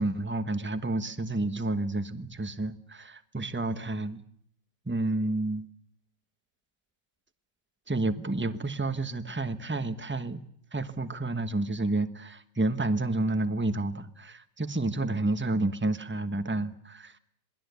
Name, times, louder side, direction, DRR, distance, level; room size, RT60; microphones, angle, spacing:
voice 1, 0.0-4.2 4.8-5.7 7.9-10.4 10.7-17.2, right 2 dB, 10° right, 11 dB, 0.9 m, -30 dB
27.5 x 20.0 x 8.3 m, 0.67 s
omnidirectional pair, 1.9 m